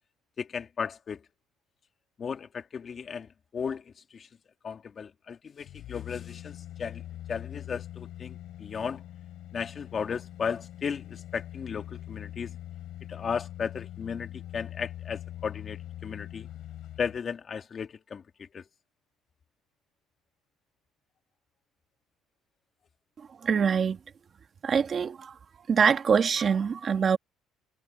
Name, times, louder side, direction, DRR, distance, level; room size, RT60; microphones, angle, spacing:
voice 1, 0.4-1.2 2.2-4.3 4.6-7.0 7.3-9.0 9.5-12.6 13.1-16.5 17.0-18.6, left 6 dB, 35° left, 2.0 m, -35 dB
sound 1, 5.6-17.2 17.6-17.7, left 13 dB, 65° left, 6.7 m, -43 dB
voice 2, 23.4-24.0 24.6-25.3 25.7-27.2, right 6 dB, 40° right, 1.9 m, -24 dB
cardioid pair, 110°, 0 cm